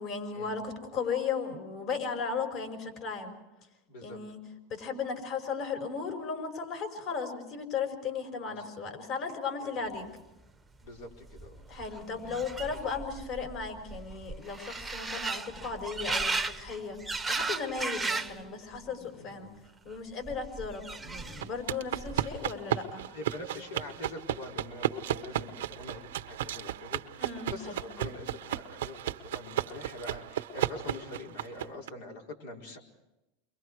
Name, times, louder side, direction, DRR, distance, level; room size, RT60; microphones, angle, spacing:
voice 1, 0.0-3.3 4.0-4.4 4.7-10.1 11.7-17.0 17.3-19.5 19.8-23.1 27.2-27.7, left 5 dB, 50° left, 4 dB, 5.4 m, -36 dB
voice 2, 3.9-4.2 8.5-8.6 9.6-9.7 10.8-11.7 19.0-19.7 23.1-32.8, left 2 dB, 80° left, 1 dB, 4.4 m, -44 dB
sound 1, 10.9-11.0 11.1-18.4 18.7-19.3 20.3-21.6 21.9-22.5, right 3 dB, 10° right, 0.9 m, -36 dB
sound 2, 21.4-31.9, right 12 dB, 90° right, 0.9 m, -34 dB
29.5 x 23.5 x 4.7 m, 0.96 s
supercardioid pair, 125°, 0 cm